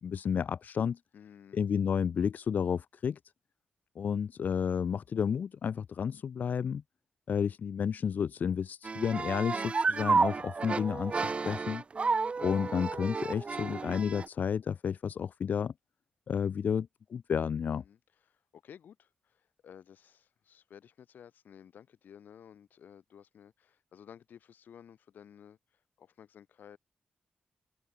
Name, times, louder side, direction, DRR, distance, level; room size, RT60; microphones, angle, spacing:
voice 1, 0.0-1.0 1.5-3.2 3.9-6.8 7.3-11.8 12.4-15.7 16.3-17.8, left 7 dB, 75° left, 1.8 m, -31 dB
voice 2, 1.1-1.7 17.7-18.0 18.3-26.8, left 8 dB, 90° left, 7.5 m, -54 dB
sound 1, 8.8-14.3, right 4 dB, 40° right, 0.5 m, -31 dB
open air
cardioid pair, 85°, 3 cm